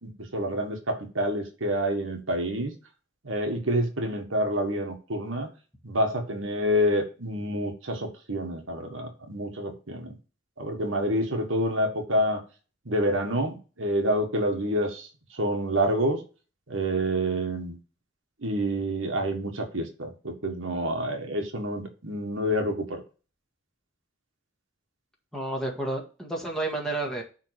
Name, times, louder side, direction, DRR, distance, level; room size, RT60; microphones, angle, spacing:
voice 1, 0.0-2.7 3.2-5.5 5.8-10.2 10.6-12.4 12.8-15.1 15.3-16.2 16.7-17.8 18.4-23.0, equal, 75° right, 3 dB, 1.6 m, -28 dB
voice 2, 25.3-27.2, right 2 dB, 5° left, -1 dB, 1.8 m, -30 dB
10.5 x 3.8 x 4.8 m, 0.35 s
head